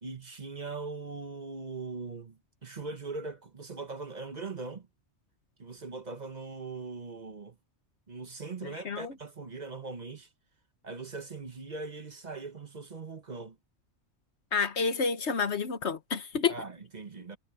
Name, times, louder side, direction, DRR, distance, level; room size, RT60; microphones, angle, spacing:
voice 1, 0.0-4.9 5.6-7.6 8.1-10.3 10.8-13.6 16.5-17.4, right 4 dB, 40° right, 1.1 m, -40 dB
voice 2, 8.6-9.1 14.5-16.5, left 5 dB, 70° left, 1.5 m, -29 dB
omnidirectional pair, 1.2 m